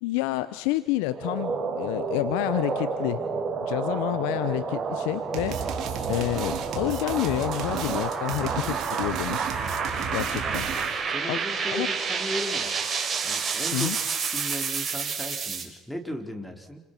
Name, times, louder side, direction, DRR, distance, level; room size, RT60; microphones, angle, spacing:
voice 1, 0.0-3.2 3.6-5.6 6.1-9.4 10.1-10.7 11.3-11.4 11.7-11.9 13.7-14.0, left 18 dB, 80° left, 14 dB, 0.9 m, -29 dB
sound 1, 1.1-15.7, right 5 dB, 40° right, 6.2 m, -30 dB
sound 2, 5.3-11.1, right 7 dB, 65° right, 4.2 m, -34 dB
voice 2, 11.1-12.8 13.2-13.9 14.3-16.8, equal, 5° left, 4 dB, 4.7 m, -36 dB
28.5 x 27.5 x 6.1 m, 0.99 s
hypercardioid pair, 70°, 0 cm